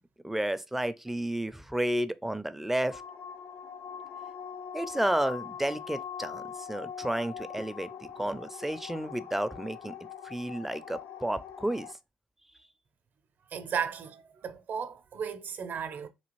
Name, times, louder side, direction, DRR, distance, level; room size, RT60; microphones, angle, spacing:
voice 1, 0.2-3.0 4.7-6.4 6.7-7.9 8.2-9.9 10.2-11.9, right 1 dB, 5° right, 0.4 m, -31 dB
sound 1, 2.9-11.9, left 8 dB, 65° left, 0.3 m, -42 dB
voice 2, 13.5-16.1, right 7 dB, 60° right, 0.6 m, -35 dB
3.2 x 2.4 x 3.1 m
supercardioid pair, 60°, 4 cm